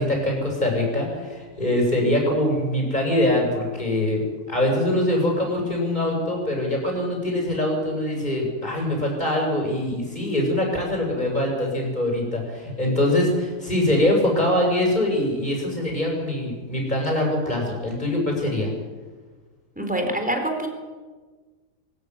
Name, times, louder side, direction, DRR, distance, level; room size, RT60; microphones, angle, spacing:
voice 1, 0.0-4.2 4.5-18.7, left 1 dB, 25° left, 0 dB, 7.7 m, -23 dB
voice 2, 19.8-20.7, right 1 dB, 5° right, 3 dB, 4.1 m, -25 dB
24.0 x 14.5 x 9.7 m, 1.4 s
omnidirectional pair, 1.8 m